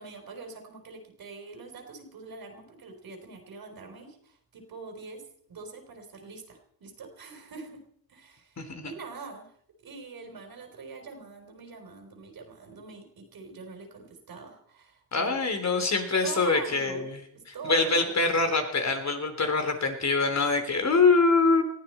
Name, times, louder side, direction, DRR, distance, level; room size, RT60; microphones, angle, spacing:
voice 1, 0.0-7.8 8.1-9.5 9.8-15.4 16.2-17.0 17.3-18.2, right 4 dB, 65° right, 3 dB, 3.9 m, -44 dB
voice 2, 8.6-8.9 15.1-17.2 17.6-21.6, left 3 dB, 45° left, 6 dB, 3.6 m, -24 dB
20.0 x 14.0 x 4.4 m, 0.67 s
cardioid pair, 75°, 38 cm